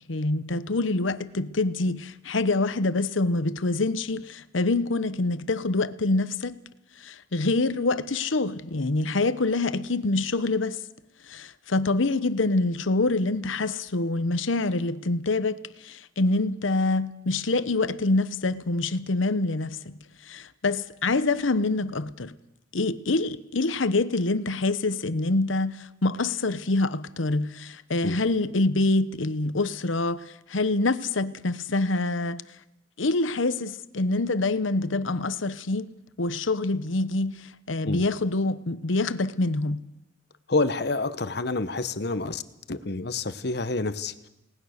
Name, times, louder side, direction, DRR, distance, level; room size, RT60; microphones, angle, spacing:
voice 1, 0.1-6.6 7.0-10.8 11.3-20.0 20.2-22.3 22.7-32.4 33.0-35.9 36.2-39.8, left 2 dB, 90° left, 1.0 m, -26 dB
voice 2, 40.5-42.4 42.7-44.3, left 3 dB, 55° left, 1.1 m, -28 dB
29.5 x 19.0 x 6.6 m
head